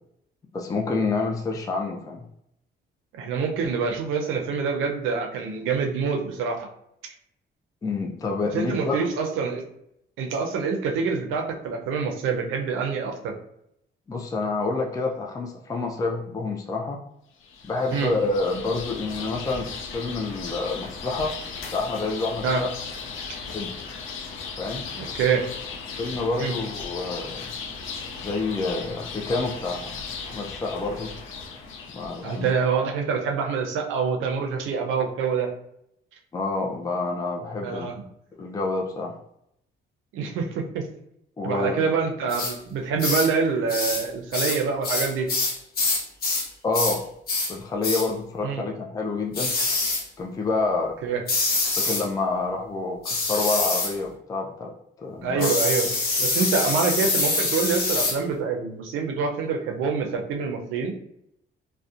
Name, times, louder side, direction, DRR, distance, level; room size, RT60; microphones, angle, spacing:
voice 1, 0.5-2.2 7.8-9.0 14.1-17.0 17.7-19.7 19.9-21.3 21.7-22.7 23.5-23.7 24.6-24.8 26.0-27.5 28.2-30.0 30.2-31.1 31.9-32.7 36.3-37.9 38.4-39.2 41.4-41.9 46.6-47.0 47.5-49.5 50.2-50.9 51.8-54.7 55.0-55.5, left 3 dB, 20° left, 0 dB, 0.3 m, -28 dB
voice 2, 3.1-6.7 7.0-7.1 8.5-9.6 10.2-13.3 17.9-18.1 22.4-22.6 23.3-23.4 25.0-25.5 26.4-26.5 32.2-35.5 37.6-38.0 40.1-40.9 41.4-45.3 48.4-48.6 51.0-51.2 55.2-55.9 56.2-60.9, right 5 dB, 90° right, 3 dB, 0.5 m, -26 dB
sound 1, 17.4-32.6, left 5 dB, 85° left, 0.5 m, -37 dB
sound 2, 42.3-42.5 43.0-43.3 43.7-44.1 44.3-46.5 46.7-47.0 47.3-47.5 47.8-48.1 49.3-50.1 51.3-52.1 53.0-53.9 55.4-58.2, left 3 dB, 50° left, 0.7 m, -25 dB
2.7 x 2.1 x 2.4 m, 0.76 s
cardioid pair, 90°, 20 cm